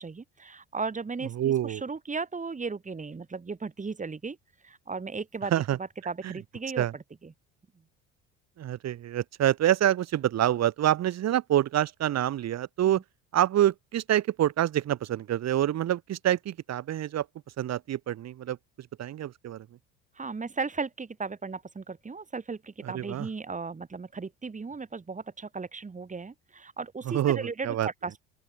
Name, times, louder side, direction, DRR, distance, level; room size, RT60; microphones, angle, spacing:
voice 1, 0.0-4.4 4.6-5.5 5.8-7.3 12.9-13.0 20.2-28.1, right 4 dB, 20° right, 2.9 m, -36 dB
voice 2, 1.4-1.8 5.5-5.8 6.2-6.3 6.8-6.9 8.6-13.0 13.3-17.2 17.6-18.6 19.0-19.6 22.8-23.3 27.1-27.9, right 12 dB, 50° right, 1.6 m, -26 dB
open air
hypercardioid pair, 75°, 35 cm